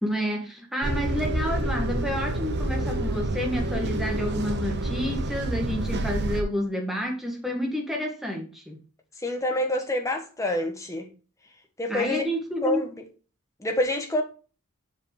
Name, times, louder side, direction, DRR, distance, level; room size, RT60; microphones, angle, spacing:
voice 1, 0.0-8.8 11.9-12.8, equal, ahead, 1.7 m, -29 dB
sound 1, 0.8-6.4, right 1 dB, 50° right, 0.9 m, -28 dB
voice 2, 9.2-11.1 11.8-12.2 12.6-12.9 13.6-14.2, left 1 dB, 15° left, 1.4 m, -27 dB
7.3 x 5.1 x 4.8 m
head